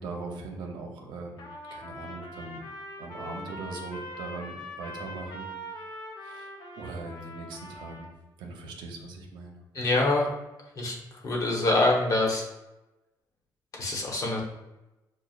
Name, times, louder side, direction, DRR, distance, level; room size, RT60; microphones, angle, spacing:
voice 1, 0.0-2.6 3.0-8.1 8.4-9.6, right 3 dB, 90° right, 1 dB, 0.7 m, -40 dB
Trumpet, 1.4-8.1, equal, 65° left, 0.7 m, -42 dB
voice 2, 9.7-10.3 10.8-11.0 11.2-12.4 13.7-14.4, left 2 dB, 50° left, -2 dB, 1.1 m, -25 dB
6.3 x 2.3 x 2.4 m, 0.98 s
cardioid pair, 100°, 8 cm